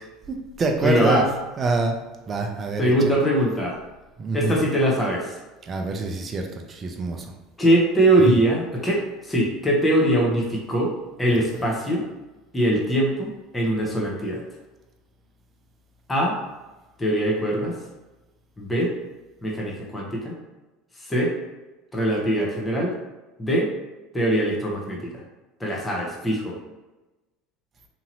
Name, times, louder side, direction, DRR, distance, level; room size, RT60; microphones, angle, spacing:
voice 1, 0.3-1.3 1.6-2.0 2.3-3.1 4.2-4.6 5.7-7.3 8.2-8.4, right 3 dB, 35° right, 3 dB, 0.5 m, -25 dB
voice 2, 0.8-1.3 2.8-3.8 4.3-5.3 7.6-10.9 11.2-12.0 12.5-14.4 16.1-16.4 17.0-17.7 18.6-18.9 19.4-20.4 21.0-21.3 21.9-22.9 23.4-23.7 24.1-25.2 25.6-26.6, right 1 dB, 15° left, -2 dB, 0.9 m, -22 dB
2.9 x 2.7 x 2.6 m, 1.1 s
hypercardioid pair, 75°, 0 cm